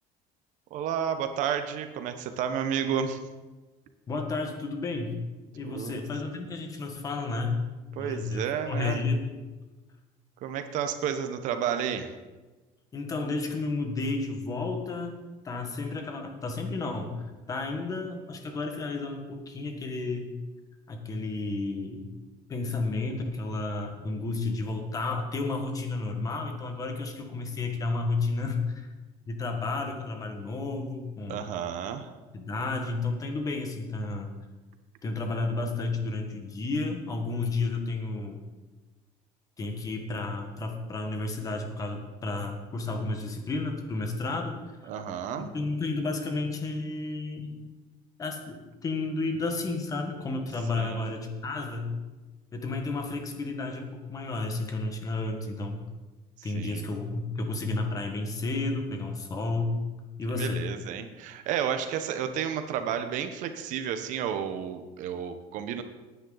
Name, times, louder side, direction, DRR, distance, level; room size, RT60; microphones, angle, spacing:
voice 1, 0.7-3.2 5.7-6.0 8.0-9.0 10.4-12.1 31.3-32.1 44.9-45.5 50.7-51.1 56.4-56.8 60.3-65.8, right 8 dB, 55° right, 8 dB, 1.1 m, -31 dB
voice 2, 4.1-5.1 5.5-7.6 8.0-9.2 12.9-20.3 20.9-22.0 22.5-28.9 29.3-31.4 32.3-34.3 35.0-38.4 39.6-44.8 45.4-47.6 48.2-51.9 52.5-55.8 56.4-59.8 60.2-60.6, left 3 dB, 20° left, 4 dB, 1.6 m, -32 dB
18.0 x 9.6 x 4.0 m, 1.2 s
cardioid pair, 170°, 15 cm